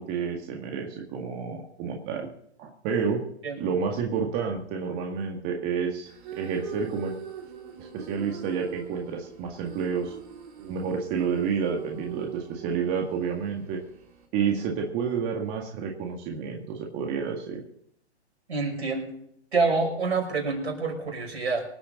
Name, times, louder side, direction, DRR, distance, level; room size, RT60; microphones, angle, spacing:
voice 1, 0.0-2.3 2.6-3.2 3.6-6.1 6.4-7.1 7.8-10.1 10.6-13.8 14.3-17.6, right 6 dB, 30° right, 1 dB, 1.9 m, -29 dB
sound 1, 6.1-14.3, right 8 dB, 45° right, 3.3 m, -42 dB
voice 2, 18.5-19.1 19.5-21.6, right 4 dB, 70° right, 2 dB, 5.9 m, -27 dB
25.5 x 8.5 x 3.9 m, 0.71 s
hypercardioid pair, 130°, 34 cm